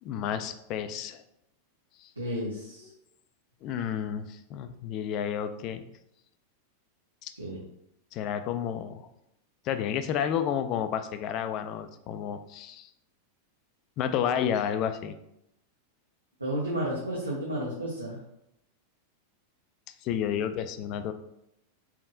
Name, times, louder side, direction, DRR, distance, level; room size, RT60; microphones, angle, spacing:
voice 1, 0.0-1.2 2.0-2.1 3.6-5.8 7.2-7.3 8.1-9.1 9.6-12.9 14.0-15.1 20.0-21.1, left 9 dB, 40° left, 10 dB, 0.3 m, -31 dB
voice 2, 2.2-2.9 7.4-7.6 16.4-18.2, right 1 dB, 85° right, -5 dB, 0.8 m, -32 dB
4.5 x 3.6 x 2.5 m, 0.80 s
figure-of-eight pair, 90°, 0 cm